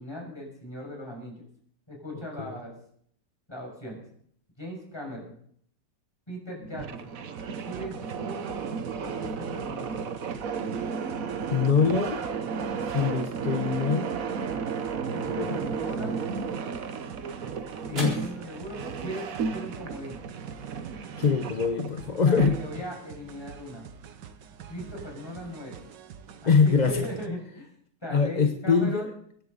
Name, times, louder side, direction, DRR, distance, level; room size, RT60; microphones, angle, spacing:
voice 1, 0.0-1.3 1.9-2.7 3.5-4.0 4.6-5.3 6.3-7.2 7.7-8.6 9.0-10.0 15.1-16.2 17.8-20.2 22.2-23.9 24.7-25.8 26.4-27.7 28.0-29.1, equal, 15° left, -1 dB, 6.3 m, -38 dB
voice 2, 2.1-2.6 11.5-12.2 12.8-14.1 15.3-15.6 17.9-18.2 21.2-22.6 26.5-27.0 28.1-29.1, left 5 dB, 35° left, 6 dB, 0.7 m, -24 dB
sound 1, 6.6-23.0, right 5 dB, 55° right, 1.3 m, -33 dB
sound 2, 7.4-27.3, right 7 dB, 80° right, 1.6 m, -46 dB
sound 3, 16.7-25.2, equal, 30° right, 4.8 m, -46 dB
25.5 x 10.5 x 4.0 m, 0.64 s
omnidirectional pair, 1.9 m